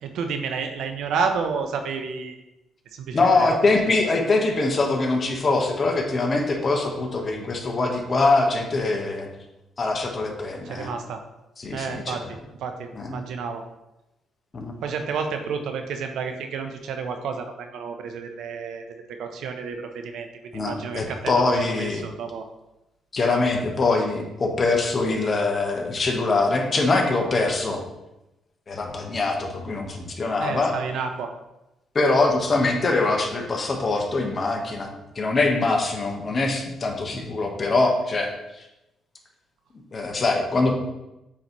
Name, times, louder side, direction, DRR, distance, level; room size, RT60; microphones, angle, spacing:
voice 1, 0.0-2.4 2.9-3.8 10.6-11.2 11.7-13.6 14.8-20.3 20.6-22.5 30.4-31.3, right 5 dB, 80° right, 6 dB, 0.7 m, -30 dB
voice 2, 3.1-9.3 9.8-10.9 11.6-12.2 12.9-13.2 14.5-14.7 20.5-22.1 23.1-27.8 28.7-30.7 31.9-38.3 39.9-40.8, left 3 dB, 40° left, 2 dB, 1.2 m, -23 dB
8.6 x 4.1 x 3.1 m, 0.93 s
cardioid pair, 90°, 0 cm